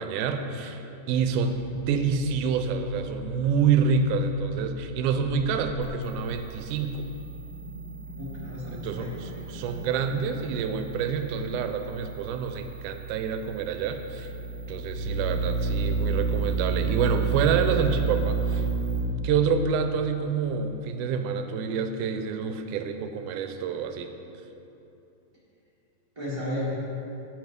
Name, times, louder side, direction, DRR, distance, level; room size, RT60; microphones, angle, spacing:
voice 1, 0.0-7.1 8.7-14.3 14.7-18.7 19.0-24.1, right 6 dB, 80° right, 7 dB, 2.0 m, -27 dB
sound 1, 1.1-19.0, right 4 dB, 45° left, 1.3 m, -32 dB
voice 2, 8.1-9.6 26.1-26.7, left 1 dB, 60° right, -9 dB, 0.3 m, -34 dB
8.2 x 6.5 x 5.1 m, 2.9 s
omnidirectional pair, 3.8 m